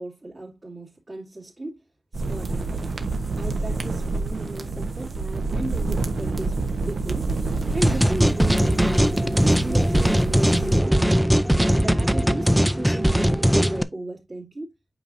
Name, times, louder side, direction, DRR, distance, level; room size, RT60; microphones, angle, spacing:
voice 1, 0.0-1.8 2.1-2.8 3.3-6.6 6.8-7.3 7.7-9.0 9.3-11.0 11.6-14.7, right 2 dB, 30° right, 2.8 m, -35 dB
sound 1, 2.1-10.8, right 3 dB, 60° right, 1.2 m, -28 dB
sound 2, 7.8-13.8, equal, 5° right, 0.5 m, -20 dB
8.5 x 5.1 x 2.7 m
wide cardioid pair, 125°, 0 cm